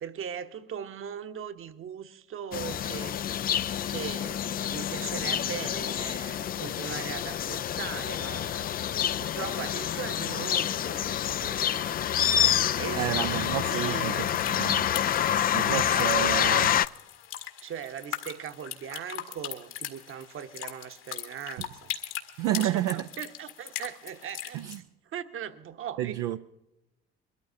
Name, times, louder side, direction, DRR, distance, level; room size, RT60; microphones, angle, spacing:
voice 1, 0.0-3.2 3.9-8.7 9.2-12.0 12.8-14.3 15.6-16.7 17.6-21.9 22.6-24.6 25.1-26.2, right 8 dB, 45° right, 1.2 m, -39 dB
sound 1, 2.5-16.9, left 10 dB, 30° left, 0.4 m, -28 dB
voice 2, 13.0-14.9 15.5-16.7 22.4-23.1 24.5-24.8 26.0-26.4, right 13 dB, 65° right, 0.6 m, -30 dB
sound 2, 14.1-24.8, left 11 dB, 70° left, 2.1 m, -40 dB
23.0 x 13.5 x 2.7 m
hypercardioid pair, 60°, 30 cm